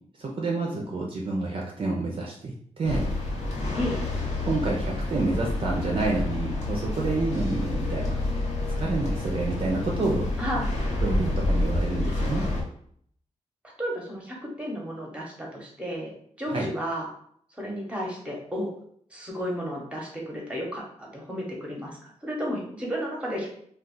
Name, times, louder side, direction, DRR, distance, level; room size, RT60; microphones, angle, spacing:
voice 1, 0.2-3.1 4.4-8.2 8.8-10.3 11.0-12.4 16.5-16.7, right 3 dB, 45° right, -1 dB, 0.5 m, -28 dB
sound 1, 2.8-12.6, left 2 dB, 65° left, 0.8 m, -28 dB
voice 2, 10.4-10.7 13.8-17.1 17.5-18.7 19.1-23.5, equal, 10° right, -1 dB, 0.9 m, -33 dB
2.3 x 2.3 x 3.8 m, 0.64 s
wide cardioid pair, 130°, 13 cm